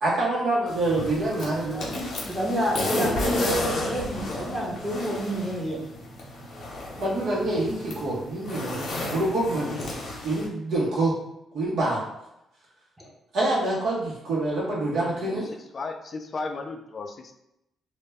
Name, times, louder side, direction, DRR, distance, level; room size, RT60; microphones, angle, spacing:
voice 1, 0.0-1.9 7.0-9.8 10.2-11.1 11.5-12.0 13.3-15.4, right 2 dB, 65° right, -5 dB, 0.6 m, -26 dB
sound 1, 0.7-10.5, left 2 dB, 60° left, 0.7 m, -32 dB
voice 2, 1.7-5.8 13.0-13.1, equal, 5° right, -4 dB, 0.7 m, -29 dB
voice 3, 15.3-17.3, left 3 dB, 40° left, 5 dB, 0.3 m, -35 dB
2.1 x 2.0 x 3.4 m, 0.84 s
cardioid pair, 90°, 0 cm